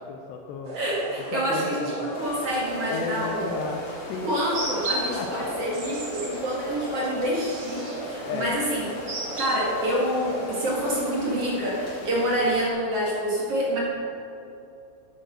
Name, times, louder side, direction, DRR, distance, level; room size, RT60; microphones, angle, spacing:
voice 1, 0.0-0.8 1.3-2.1 2.9-4.3 4.7-5.5 8.2-8.6, left 6 dB, 85° left, 3 dB, 2.5 m, -34 dB
sound 1, 0.6-11.3, right 1 dB, 90° right, 0.9 m, -34 dB
voice 2, 0.7-3.3 4.2-8.8 9.4-13.8, equal, 55° right, -4 dB, 1.7 m, -27 dB
sound 2, 2.1-12.7, left 2 dB, 70° left, 4.2 m, -42 dB
10.5 x 8.8 x 6.4 m, 2.7 s
omnidirectional pair, 5.6 m